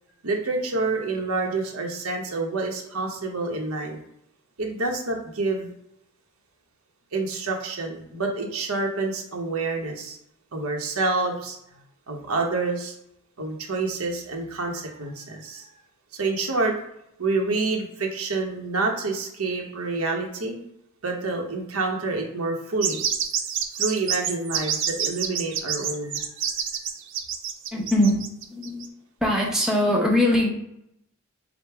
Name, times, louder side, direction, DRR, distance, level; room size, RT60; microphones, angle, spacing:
voice 1, 0.2-4.0 4.6-5.7 7.1-10.2 10.5-11.6 12.1-12.9 13.4-15.7 16.1-16.7 17.2-20.5 21.0-23.0 23.8-26.3, right 3 dB, 85° right, 1 dB, 0.9 m, -27 dB
sound 1, 22.8-28.9, right 8 dB, 60° right, 0.5 m, -27 dB
voice 2, 27.7-28.2 28.5-28.9 29.2-30.5, left 1 dB, ahead, -3 dB, 0.7 m, -21 dB
5.0 x 2.1 x 4.6 m, 0.79 s
head